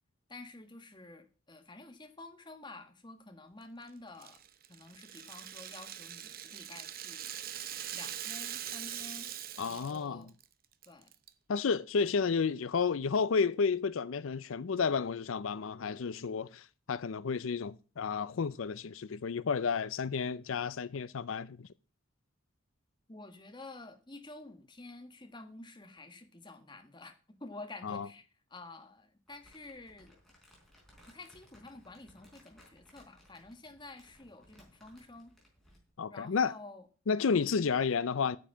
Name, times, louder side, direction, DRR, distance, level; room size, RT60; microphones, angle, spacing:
voice 1, 0.3-4.4 4.7-7.3 7.9-9.3 9.6-10.3 10.9-11.1 23.1-27.1 27.4-28.2 28.5-30.1 31.1-35.3 36.1-36.8 37.1-37.4, left 2 dB, 25° left, 1.4 m, -50 dB
Rattle (instrument), 4.2-10.0 10.3-10.4 10.8-11.3, right 10 dB, 50° right, 0.7 m, -42 dB
voice 2, 9.6-10.2 11.5-21.7 27.8-28.1 36.0-36.5 37.1-38.4, left 5 dB, 90° left, 0.5 m, -31 dB
Crumpling crinkling, 29.3-35.9, equal, ahead, 4.4 m, -62 dB
9.6 x 7.0 x 7.3 m
head